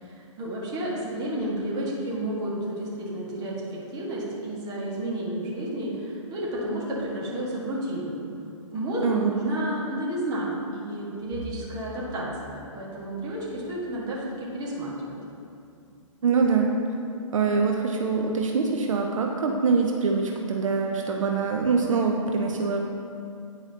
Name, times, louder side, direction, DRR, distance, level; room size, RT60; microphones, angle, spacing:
voice 1, 0.0-8.2 8.7-15.2, right 1 dB, 25° right, -5 dB, 1.6 m, -31 dB
Bowed string instrument, 11.3-15.7, equal, 45° left, 1.3 m, -46 dB
voice 2, 16.2-16.7 17.3-22.8, right 5 dB, 70° right, 1 dB, 0.6 m, -24 dB
9.8 x 4.8 x 2.8 m, 2.5 s
hypercardioid pair, 135°, 17 cm